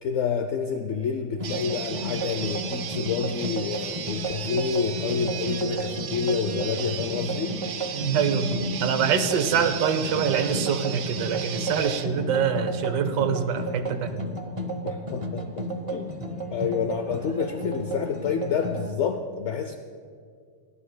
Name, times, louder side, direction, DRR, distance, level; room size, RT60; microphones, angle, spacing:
voice 1, 0.0-7.6 14.8-16.1 16.5-19.7, left 6 dB, 75° left, 7 dB, 0.6 m, -28 dB
sound 1, 1.4-18.9, right 1 dB, 35° right, 0.5 m, -33 dB
sound 2, 1.4-12.1, right 7 dB, 60° right, 0.8 m, -35 dB
voice 2, 7.9-14.2, right 7 dB, 90° right, 7 dB, 1.4 m, -25 dB
29.5 x 9.9 x 2.2 m, 2.1 s
omnidirectional pair, 1.8 m